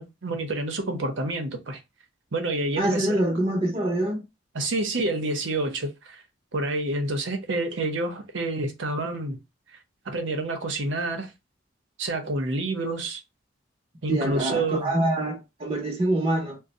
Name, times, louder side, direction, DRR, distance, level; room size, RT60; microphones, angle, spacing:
voice 1, 0.0-1.8 2.3-3.2 4.5-6.2 6.5-9.4 10.1-11.3 12.0-13.2 14.0-14.9, right 2 dB, 80° right, 0.7 m, -28 dB
voice 2, 2.8-4.2 14.1-16.6, right 1 dB, 30° right, 0.7 m, -25 dB
2.6 x 2.1 x 4.0 m
head